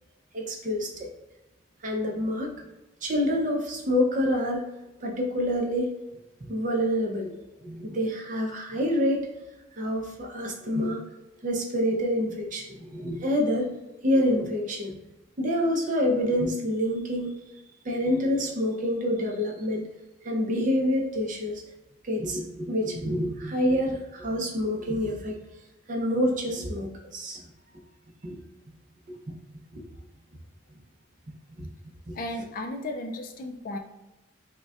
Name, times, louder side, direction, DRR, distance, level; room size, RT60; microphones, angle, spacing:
voice 1, 0.3-1.1 1.8-2.5 3.0-4.7 5.0-5.9 6.5-7.3 7.6-9.3 9.7-11.0 11.4-13.7 14.0-14.9 15.4-17.3 17.8-19.8 20.2-21.6 22.0-25.4 25.9-27.4 28.2-28.4 29.1-29.3 29.7-29.8 31.6-31.7 32.1-32.2, equal, 40° right, 0 dB, 0.5 m, -27 dB
voice 2, 32.1-33.8, left 1 dB, 40° left, 4 dB, 0.3 m, -34 dB
5.1 x 2.2 x 2.4 m, 1.0 s
head